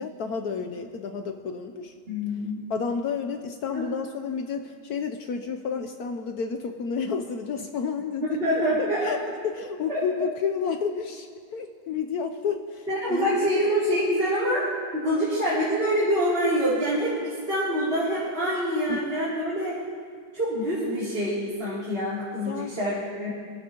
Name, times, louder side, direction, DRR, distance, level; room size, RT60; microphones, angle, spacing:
voice 1, 0.0-1.9 2.7-8.3 8.8-9.2 9.4-13.5 18.9-19.0 22.5-22.7, left 6 dB, 65° left, 6 dB, 1.2 m, -31 dB
voice 2, 2.1-2.6 3.7-3.8 8.4-9.1 9.9-10.0 12.9-14.7 14.9-19.8 20.3-23.3, equal, 35° right, -8 dB, 3.3 m, -25 dB
23.0 x 15.5 x 2.9 m, 2.1 s
omnidirectional pair, 1.8 m